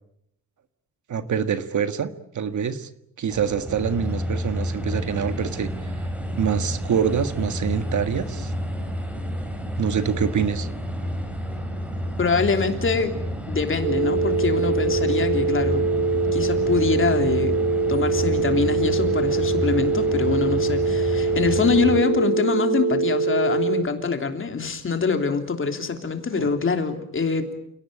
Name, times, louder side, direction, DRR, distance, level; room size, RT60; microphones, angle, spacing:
voice 1, 1.1-2.1 2.3-2.9 3.2-5.7 6.4-8.5 9.8-10.7 26.3-26.5, right 7 dB, 60° right, 10 dB, 1.7 m, -25 dB
sound 1, 3.3-22.0, equal, 5° right, 4.7 m, -30 dB
voice 2, 12.2-13.1 13.5-15.8 16.3-17.5 17.9-27.5, left 4 dB, 35° left, 6 dB, 3.2 m, -24 dB
sound 2, 13.8-23.8, right 3 dB, 45° right, 3.0 m, -23 dB
30.0 x 18.0 x 8.8 m, 0.77 s
cardioid pair, 125°, 33 cm